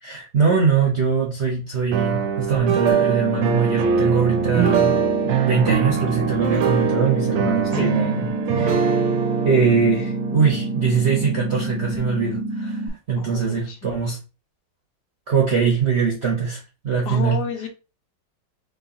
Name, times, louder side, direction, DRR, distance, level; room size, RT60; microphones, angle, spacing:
voice 1, 0.0-5.0 5.5-8.9 9.4-12.8 13.1-14.2 15.3-17.4, right 5 dB, 50° right, 0.9 m, -22 dB
sound 1, 1.9-11.8, right 6 dB, 85° right, 1.5 m, -23 dB
sound 2, 2.9-12.9, right 1 dB, 5° right, 1.0 m, -28 dB
voice 2, 13.2-14.0 17.1-17.7, left 5 dB, 65° left, 1.3 m, -31 dB
4.5 x 3.2 x 2.8 m
omnidirectional pair, 2.1 m